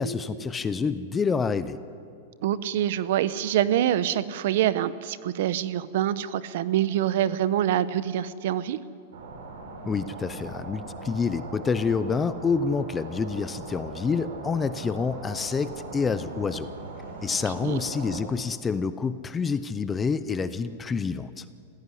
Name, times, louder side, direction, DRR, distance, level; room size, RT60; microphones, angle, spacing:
voice 1, 0.0-1.8 9.9-16.7 17.2-21.4, left 5 dB, 10° left, 13 dB, 0.5 m, -27 dB
voice 2, 2.4-8.8 17.6-17.8, right 11 dB, 50° right, 15 dB, 0.9 m, -25 dB
sound 1, 9.1-18.2, right 3 dB, 70° right, 5.4 m, -40 dB
26.5 x 16.5 x 9.8 m, 2.4 s
supercardioid pair, 175°, 0 cm